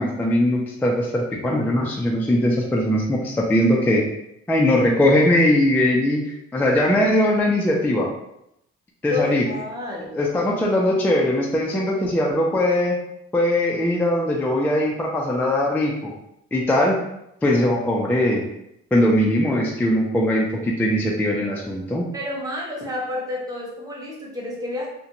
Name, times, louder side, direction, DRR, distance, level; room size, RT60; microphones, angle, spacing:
voice 1, 0.0-4.0 4.5-8.1 9.0-9.4 10.1-13.0 13.3-16.1 16.5-17.0 17.4-18.4 18.9-22.1, left 1 dB, 5° left, -2 dB, 0.3 m, -20 dB
voice 2, 9.1-10.2 22.1-24.9, left 2 dB, 10° right, -4 dB, 0.8 m, -30 dB
2.4 x 2.1 x 2.8 m, 0.81 s
cardioid pair, 90°, 30 cm